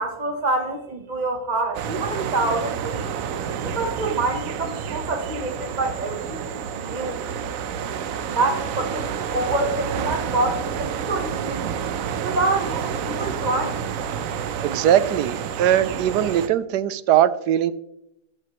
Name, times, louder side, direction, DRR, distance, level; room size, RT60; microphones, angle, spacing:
voice 1, 0.0-3.1 3.6-7.2 8.3-11.7 12.2-13.8, right 2 dB, 30° right, 3 dB, 1.0 m, -26 dB
sound 1, 1.7-16.5, right 7 dB, 65° right, 1.0 m, -29 dB
voice 2, 14.6-17.7, right 10 dB, 85° right, 15 dB, 1.2 m, -20 dB
13.5 x 11.0 x 3.0 m, 0.83 s
omnidirectional pair, 1.7 m